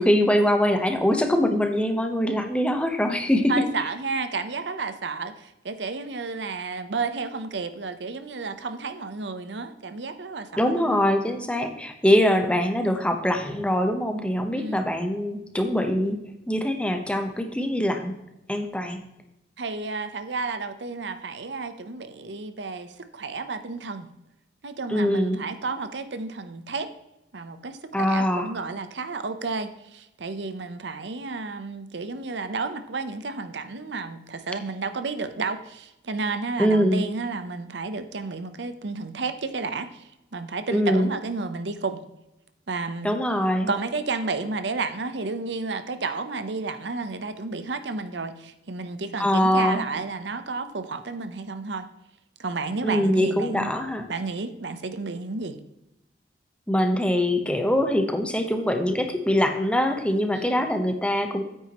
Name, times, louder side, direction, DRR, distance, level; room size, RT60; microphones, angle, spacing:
voice 1, 0.0-3.5 10.6-16.2 16.5-18.1 18.5-19.0 24.9-25.4 27.9-28.5 36.6-37.1 40.7-41.1 43.0-43.7 49.2-49.8 52.8-54.1 56.7-61.4, equal, 5° left, 6 dB, 0.9 m, -23 dB
voice 2, 3.5-11.0 14.6-14.8 19.6-24.1 24.6-26.9 27.3-40.0 40.3-42.0 42.7-43.2 43.7-51.9 52.4-53.7 54.1-55.6 60.3-60.6, right 3 dB, 70° right, 10 dB, 0.8 m, -31 dB
9.2 x 9.1 x 3.0 m, 0.90 s
head